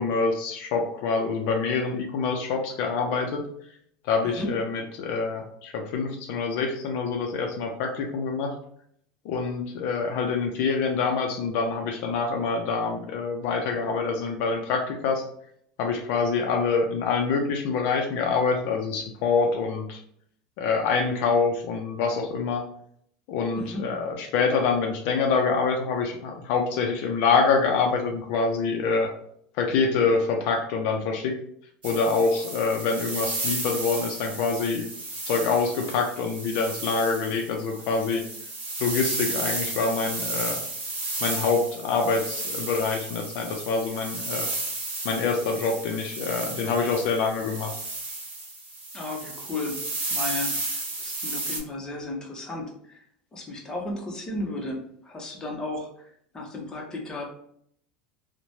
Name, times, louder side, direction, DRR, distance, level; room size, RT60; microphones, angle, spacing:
voice 1, 0.0-3.4 4.1-8.5 9.2-15.2 15.8-20.0 20.6-22.6 23.3-29.1 29.6-31.4 31.8-34.9 35.3-38.2 38.8-40.6 41.2-44.5 45.0-47.7, left 4 dB, 65° left, 2 dB, 0.4 m, -26 dB
voice 2, 23.6-23.9 48.9-49.8 50.1-53.0 53.3-57.2, left 2 dB, 20° left, 0 dB, 0.8 m, -34 dB
sound 1, 31.8-51.6, right 2 dB, 40° right, 1.2 m, -33 dB
3.0 x 2.1 x 2.7 m, 0.68 s
supercardioid pair, 125°, 4 cm